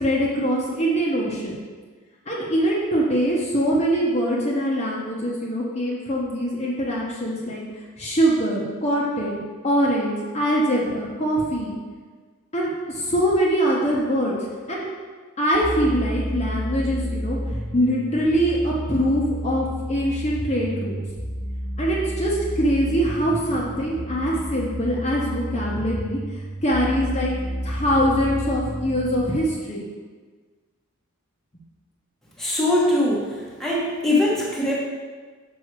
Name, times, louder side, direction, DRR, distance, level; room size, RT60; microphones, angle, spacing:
voice 1, 0.0-1.5 2.3-7.6 8.0-11.7 12.5-14.4 14.7-14.9 15.4-17.4 17.7-21.0 21.8-26.2 26.6-27.3 27.6-29.8, equal, 30° left, -4 dB, 1.0 m, -23 dB
sound 1, 15.5-29.4, equal, 15° right, 0.8 m, -31 dB
voice 2, 32.4-33.3 33.6-34.8, left 1 dB, ahead, -6 dB, 1.2 m, -21 dB
6.8 x 5.3 x 4.6 m, 1.5 s
head